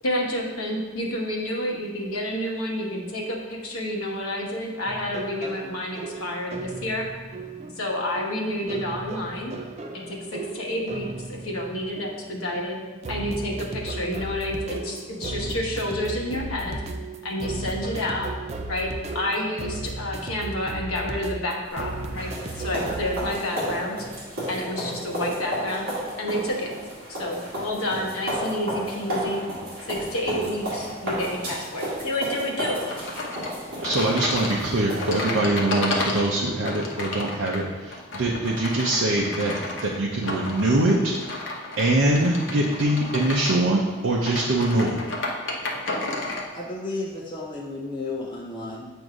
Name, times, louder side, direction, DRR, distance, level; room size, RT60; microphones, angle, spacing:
voice 1, 0.0-7.1 7.7-9.5 9.9-12.8 13.1-16.8 17.2-18.3 18.7-22.3 22.6-24.0 24.5-25.9 26.2-26.7 27.1-29.4 29.9-32.8, left 1 dB, 80° left, -1 dB, 1.0 m, -29 dB
sound 1, 4.9-23.2, right 2 dB, 30° right, 0.3 m, -36 dB
sound 2, 21.7-35.4, equal, 45° right, 1.7 m, -33 dB
sound 3, 32.9-46.5, left 2 dB, 55° left, 0.8 m, -32 dB
voice 2, 33.8-39.6 39.8-41.2 41.8-45.0, right 1 dB, 70° right, -4 dB, 0.6 m, -23 dB
voice 3, 46.5-48.9, left 2 dB, 20° left, -4 dB, 0.5 m, -33 dB
7.6 x 2.6 x 4.8 m, 1.3 s
head